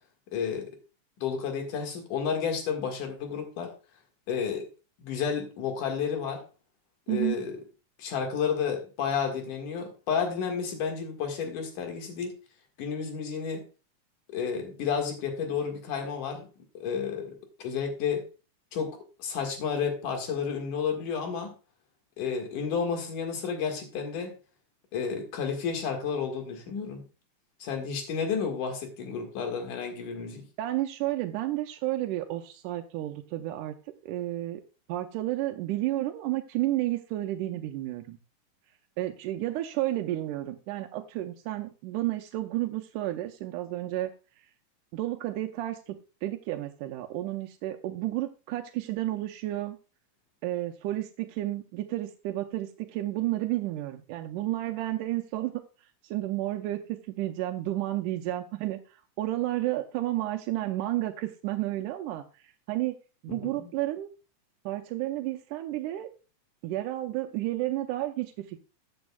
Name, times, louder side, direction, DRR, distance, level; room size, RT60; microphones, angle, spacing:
voice 1, 0.3-0.7 1.2-3.7 4.3-4.7 5.0-6.4 7.1-7.6 8.0-12.3 12.8-13.6 14.3-16.5 16.7-18.2 18.7-21.5 22.2-24.3 24.9-27.0 27.6-30.5 63.3-63.7, left 6 dB, 80° left, 4 dB, 3.2 m, -31 dB
voice 2, 30.6-33.8 34.0-34.6 34.9-38.2 39.0-44.1 44.9-49.8 50.4-55.6 56.0-63.0 63.2-64.1 64.7-66.1 66.6-68.6, right 15 dB, 85° right, 5 dB, 2.2 m, -31 dB
14.5 x 8.7 x 2.3 m, 0.33 s
omnidirectional pair, 3.6 m